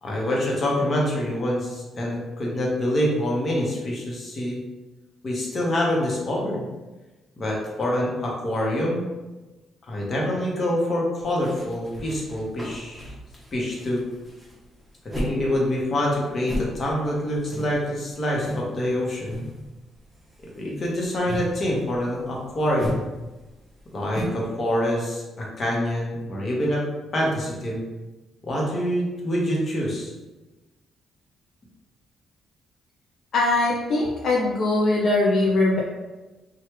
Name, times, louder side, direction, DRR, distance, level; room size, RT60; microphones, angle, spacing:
voice 1, 0.0-4.6 5.2-6.6 7.4-9.0 9.9-13.1 13.5-14.0 15.1-19.4 20.6-23.0 23.9-26.8 27.1-27.8 28.4-30.1, left 1 dB, 40° left, -3 dB, 1.0 m, -26 dB
sound 1, 11.2-15.4 15.7-18.7 19.0-19.7 20.0-24.5, equal, 5° right, 0.9 m, -35 dB
voice 2, 33.3-35.8, left 2 dB, 60° left, -3 dB, 0.4 m, -21 dB
3.1 x 2.3 x 3.1 m, 1.1 s
cardioid pair, 90°, 0 cm